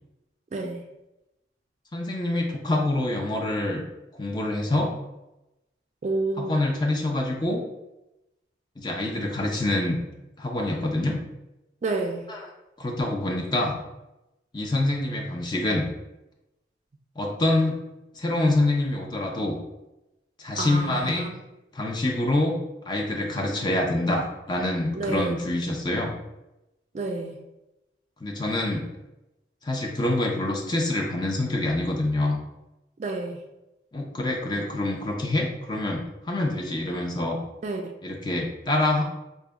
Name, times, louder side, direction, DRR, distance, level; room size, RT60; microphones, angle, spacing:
voice 1, 1.9-3.8 4.2-4.9 6.4-7.6 8.8-10.0 10.4-11.2 12.3-12.5 12.8-13.8 14.5-15.9 17.2-17.8 18.1-19.6 20.4-21.3 21.7-22.5 22.9-26.1 28.2-28.9 29.6-32.4 33.9-37.4 38.0-39.0, left 1 dB, 25° left, 0 dB, 0.5 m, -26 dB
voice 2, 6.0-6.6 11.8-12.2 20.6-21.3 24.9-25.3 26.9-27.4 33.0-33.4 37.6-37.9, right 3 dB, 40° right, 4 dB, 0.3 m, -29 dB
3.9 x 2.2 x 3.4 m, 0.94 s
head